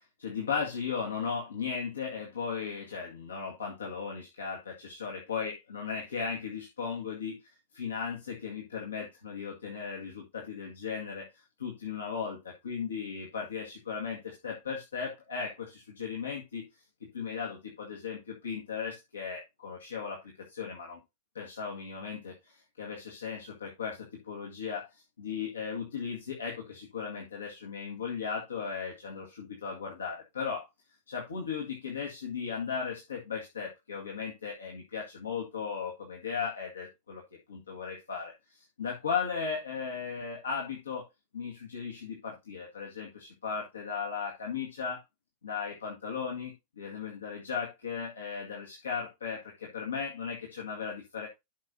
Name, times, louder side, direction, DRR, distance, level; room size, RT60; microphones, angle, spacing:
voice 1, 0.0-7.4 7.7-16.7 17.0-21.0 21.4-30.7 31.1-37.2 37.5-41.1 41.3-45.0 45.4-51.3, left 6 dB, 70° left, -1 dB, 1.9 m, -36 dB
12.5 x 5.8 x 2.7 m, 0.22 s
figure-of-eight pair, 90°, 0 cm